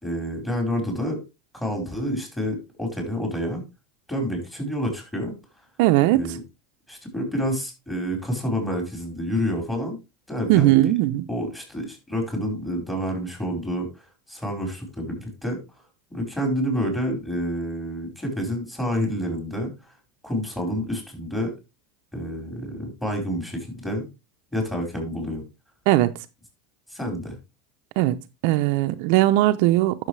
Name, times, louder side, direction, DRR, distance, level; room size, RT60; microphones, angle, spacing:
voice 1, 0.0-1.2 1.5-3.6 4.1-5.4 6.1-6.4 6.9-10.0 10.3-10.9 11.3-15.6 16.1-19.7 20.2-21.5 22.1-24.1 24.5-25.4 26.9-27.4, equal, 10° left, 4.7 m, -28 dB
voice 2, 5.8-6.4 10.5-11.3 25.9-26.1 28.0-28.2 28.4-30.1, right 16 dB, 65° right, 0.7 m, -19 dB
11.5 x 6.5 x 3.3 m
supercardioid pair, 130°, 0 cm